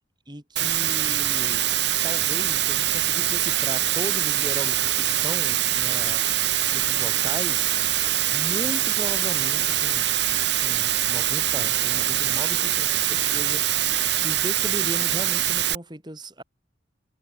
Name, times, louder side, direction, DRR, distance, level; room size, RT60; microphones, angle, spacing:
voice 1, 0.3-1.7 2.0-7.8 8.3-10.1 10.6-13.9 14.2-16.4, right 1 dB, 25° right, 3.9 m, -36 dB
Water, 0.6-15.8, right 12 dB, 60° right, 3.7 m, -23 dB
head